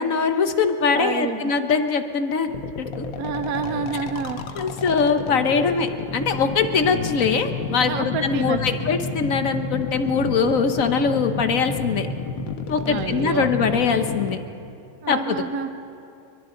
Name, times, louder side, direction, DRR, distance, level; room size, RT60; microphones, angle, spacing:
voice 1, 0.0-3.0 4.5-12.1 12.7-14.4 15.1-15.4, left 5 dB, 50° left, 8 dB, 1.2 m, -22 dB
voice 2, 0.9-1.4 3.2-4.4 7.8-8.6 12.8-13.5 15.0-15.7, right 6 dB, 60° right, 8 dB, 1.1 m, -28 dB
sound 1, 2.5-14.4, left 4 dB, 80° left, 1.8 m, -30 dB
29.5 x 23.0 x 3.8 m, 2.6 s
omnidirectional pair, 2.1 m